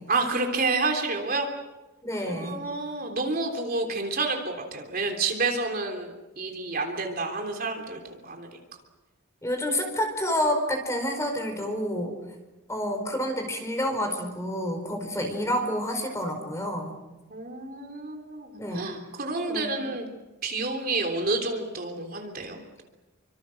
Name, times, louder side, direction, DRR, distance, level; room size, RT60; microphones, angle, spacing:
voice 1, 0.1-1.5 2.1-8.6 17.3-20.1 20.4-22.8, right 3 dB, 45° right, 2 dB, 3.4 m, -29 dB
voice 2, 2.0-2.6 9.4-12.2 12.7-16.9 18.6-18.9 19.5-19.9, equal, 15° left, 5 dB, 4.7 m, -29 dB
29.0 x 25.5 x 6.5 m, 1.1 s
head